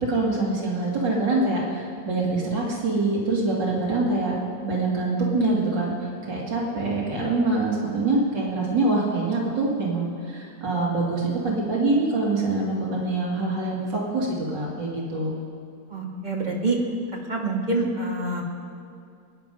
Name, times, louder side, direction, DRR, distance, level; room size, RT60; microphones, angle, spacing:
voice 1, 0.0-15.3, right 2 dB, 85° right, -3 dB, 3.1 m, -25 dB
voice 2, 15.9-16.8 17.3-18.4, right 2 dB, 25° right, -1 dB, 1.8 m, -26 dB
21.0 x 9.9 x 5.4 m, 2.3 s
omnidirectional pair, 1.9 m